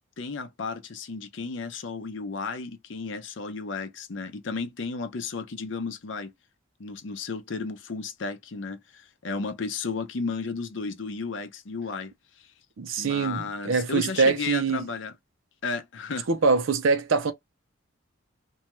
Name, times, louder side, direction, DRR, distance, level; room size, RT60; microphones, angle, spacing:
voice 1, 0.2-6.3 6.8-12.5 13.0-15.1 15.6-16.3, left 4 dB, 70° left, 0.6 m, -33 dB
voice 2, 12.8-14.9 16.3-17.3, right 4 dB, 80° right, 0.5 m, -24 dB
2.7 x 2.3 x 3.0 m
head